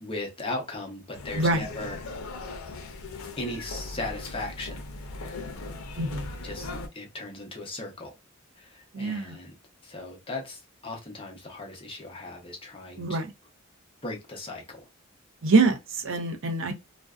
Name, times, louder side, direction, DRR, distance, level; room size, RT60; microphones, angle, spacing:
voice 1, 0.0-2.1 3.4-4.8 6.4-8.2 8.6-9.5 9.8-13.2 14.0-14.9, left 2 dB, 25° left, 0.7 m, -37 dB
sound 1, 1.1-6.9, left 2 dB, 80° left, 0.5 m, -39 dB
voice 2, 6.0-6.3 8.9-9.4 13.0-13.3 15.4-16.7, right 3 dB, 60° right, 0.6 m, -25 dB
2.5 x 2.1 x 2.3 m
head